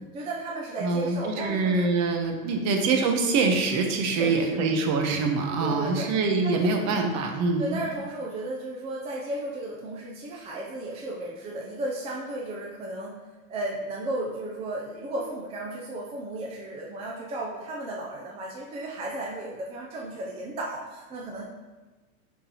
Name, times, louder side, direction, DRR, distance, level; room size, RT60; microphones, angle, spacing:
voice 1, 0.1-1.8 2.5-2.7 4.0-4.6 5.6-6.1 6.4-7.2 7.6-13.2 13.5-21.4, right 2 dB, 15° right, -3 dB, 0.4 m, -34 dB
voice 2, 0.8-7.9, right 3 dB, 40° right, 3 dB, 0.9 m, -25 dB
8.8 x 3.8 x 2.9 m, 1.2 s
supercardioid pair, 135°, 44 cm